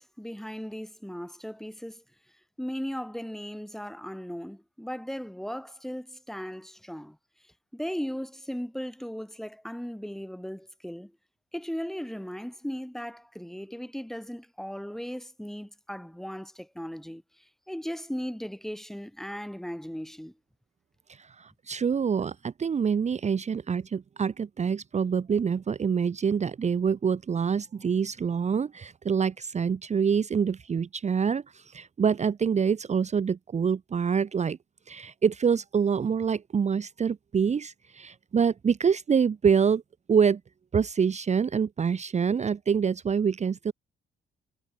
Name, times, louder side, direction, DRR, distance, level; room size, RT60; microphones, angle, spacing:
voice 1, 0.0-2.0 2.6-7.2 7.7-11.1 11.5-20.3, equal, ahead, 3.6 m, -37 dB
voice 2, 21.1-34.6 34.9-39.8 40.1-40.4 40.7-43.7, right 6 dB, 35° right, 0.9 m, -26 dB
cardioid pair, 90°, 20 cm